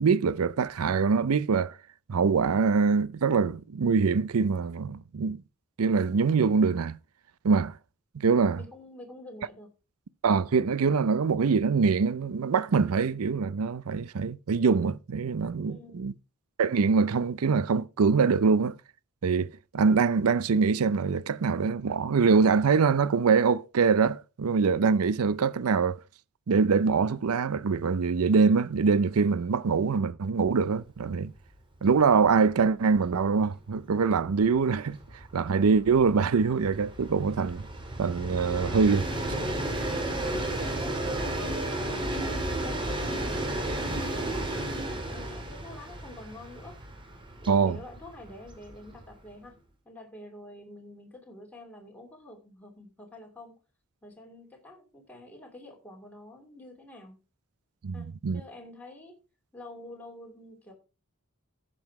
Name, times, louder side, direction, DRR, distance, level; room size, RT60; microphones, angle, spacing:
voice 1, 0.0-1.7 2.1-5.4 5.8-7.0 7.4-7.8 8.1-8.6 10.2-16.1 16.6-18.7 19.2-26.0 26.5-31.3 31.8-35.0 35.3-37.6 38.0-39.1 47.5-47.8 57.8-58.4, right 5 dB, 80° right, 0.5 m, -24 dB
voice 2, 8.5-9.7 15.7-16.1 40.4-44.6 45.0-46.7 47.4-49.6 49.8-53.6 54.0-57.2 57.9-59.1 59.5-60.7, left 1 dB, 5° left, 2.7 m, -47 dB
Train, 31.1-31.2 31.5-31.6 31.9-49.3, right 1 dB, 20° right, 2.4 m, -34 dB
10.5 x 7.6 x 4.7 m
head